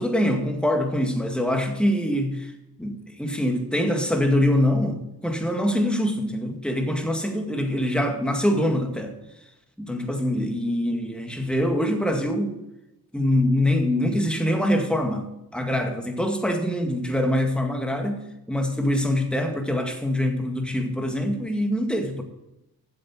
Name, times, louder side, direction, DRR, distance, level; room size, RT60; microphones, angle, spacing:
voice 1, 0.0-2.5 2.8-9.2 9.8-12.6 13.1-15.3 15.5-18.2 18.5-22.2, left 1 dB, ahead, 3 dB, 1.9 m, -24 dB
7.8 x 7.6 x 7.3 m, 0.89 s
cardioid pair, 50°, 39 cm